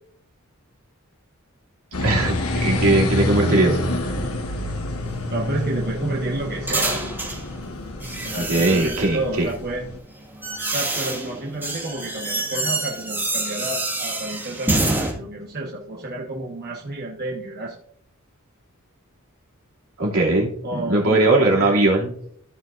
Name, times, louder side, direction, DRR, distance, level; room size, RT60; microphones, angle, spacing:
sound 1, 1.9-10.0, left 1 dB, 75° left, 1.4 m, -27 dB
voice 1, 1.9-2.3 2.6-3.8 8.4-9.5 20.0-22.1, right 2 dB, 75° right, -2 dB, 2.7 m, -19 dB
voice 2, 3.5-3.8 4.5-4.7 5.3-7.0 8.2-9.9 10.7-17.7 20.6-21.8, right 2 dB, 45° right, -2 dB, 1.3 m, -31 dB
sound 2, 5.0-7.4 8.0-9.2 9.9-15.1, right 2 dB, 10° right, 2.0 m, -27 dB
15.0 x 6.2 x 2.6 m, 0.65 s
head